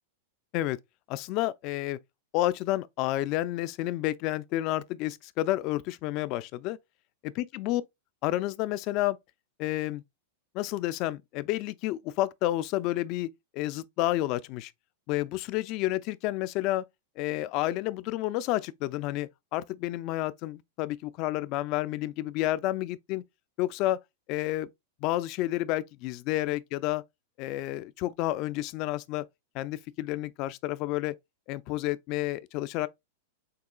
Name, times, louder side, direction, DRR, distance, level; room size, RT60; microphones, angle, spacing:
voice 1, 1.1-2.0 2.3-6.8 7.2-7.8 8.2-9.2 9.6-10.0 10.5-13.3 13.5-14.7 15.1-16.8 17.2-23.2 23.6-24.0 24.3-24.7 25.0-27.0 27.4-29.3 29.5-31.2 31.5-32.9, left 16 dB, 45° left, 0.3 m, -30 dB
6.5 x 2.3 x 2.3 m
hypercardioid pair, 110°, 0 cm